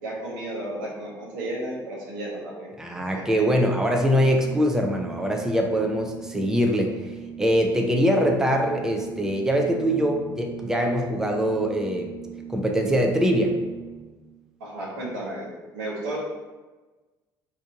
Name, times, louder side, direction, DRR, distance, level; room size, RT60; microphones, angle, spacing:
voice 1, 0.0-2.7 3.1-3.4 14.6-16.2, right 1 dB, 80° right, -4 dB, 0.9 m, -33 dB
voice 2, 2.8-6.9 7.4-12.2 12.5-13.6, equal, 5° right, 2 dB, 0.5 m, -23 dB
Organ, 3.7-14.4, right 8 dB, 20° left, 1.0 m, -40 dB
2.7 x 2.5 x 3.5 m, 1.2 s
hypercardioid pair, 60°, 10 cm